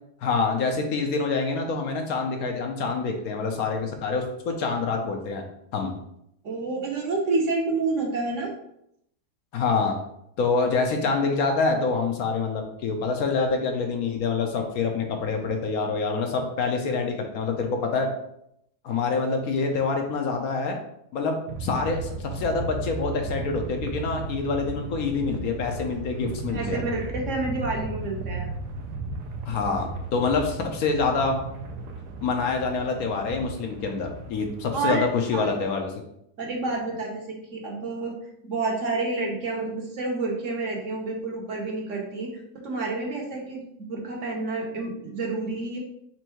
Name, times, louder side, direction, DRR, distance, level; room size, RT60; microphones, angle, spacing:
voice 1, 0.2-5.4 5.7-5.9 9.5-10.0 10.4-18.1 18.8-20.8 21.1-26.8 29.5-31.4 32.2-35.9, left 4 dB, 70° left, 3 dB, 1.0 m, -26 dB
voice 2, 6.4-8.5 26.5-28.5 34.7-35.0 35.3-35.5 36.4-38.2 38.4-42.3 42.6-45.8, right 3 dB, 55° right, -1 dB, 1.1 m, -29 dB
sound 1, 21.5-35.4, right 3 dB, 85° right, 1.2 m, -35 dB
4.4 x 2.6 x 4.4 m, 0.76 s
omnidirectional pair, 1.7 m